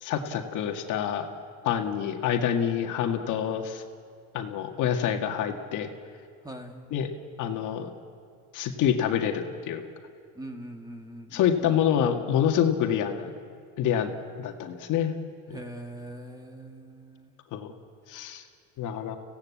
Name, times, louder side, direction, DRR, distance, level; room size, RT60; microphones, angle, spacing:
voice 1, 0.0-1.3 1.6-3.8 4.3-5.9 6.9-7.1 7.4-7.9 8.5-9.8 11.3-13.3 13.8-14.1 14.4-15.1 15.5-15.6 17.5-17.7 18.1-18.4 18.8-19.2, left 9 dB, 55° left, 5 dB, 2.0 m, -27 dB
voice 2, 6.4-6.9 10.4-11.8 15.5-17.4, right 1 dB, 10° right, 5 dB, 1.8 m, -42 dB
28.5 x 17.0 x 8.5 m, 2.3 s
cardioid pair, 125°, 37 cm